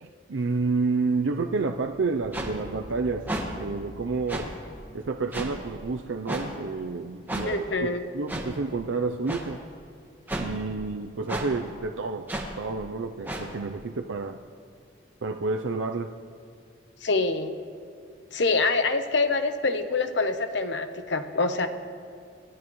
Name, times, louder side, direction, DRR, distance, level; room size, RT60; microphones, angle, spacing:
voice 1, 0.0-3.3 3.6-4.5 4.9-7.9 8.1-9.6 10.4-12.3 12.6-14.4 15.2-16.1, right 3 dB, 85° right, 5 dB, 0.5 m, -29 dB
sound 1, 1.1-7.1, equal, 65° right, 4.0 m, -46 dB
sound 2, 2.3-2.5 3.3-3.4 4.3-4.5 5.3-5.5 6.3-6.4 7.3-7.4 8.3-8.5 9.3-9.4 10.3-10.5 11.3-11.5 12.3-12.5 13.2-13.4, right 1 dB, 10° right, 1.5 m, -31 dB
voice 2, 7.5-8.0 17.0-17.5 18.3-21.7, left 3 dB, 70° left, 8 dB, 0.9 m, -25 dB
29.0 x 12.0 x 3.1 m, 2.3 s
head